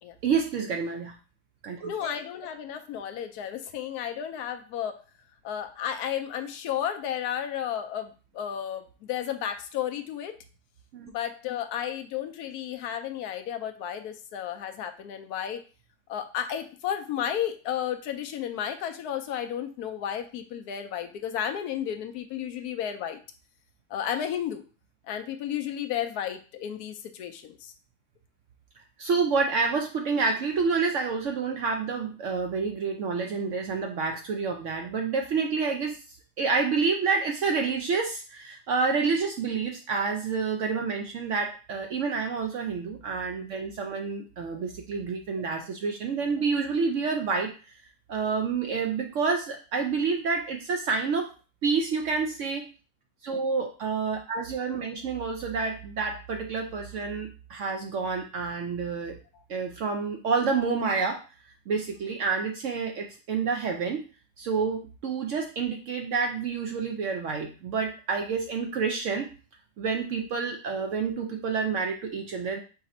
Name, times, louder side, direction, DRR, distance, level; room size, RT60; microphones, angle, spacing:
voice 1, 0.2-1.1 1.6-2.1 10.9-11.1 29.0-47.7 48.1-51.3 51.6-52.6 53.2-59.2 59.5-61.2 61.7-64.0 64.4-69.3 69.8-72.6, right 5 dB, 65° right, 3 dB, 0.7 m, -28 dB
voice 2, 1.9-5.0 5.4-10.3 11.1-15.6 16.1-23.2 23.9-24.6 25.1-27.7 44.6-44.7 59.3-59.4, left 9 dB, 75° left, 7 dB, 1.1 m, -33 dB
4.9 x 2.6 x 4.2 m, 0.35 s
omnidirectional pair, 1.7 m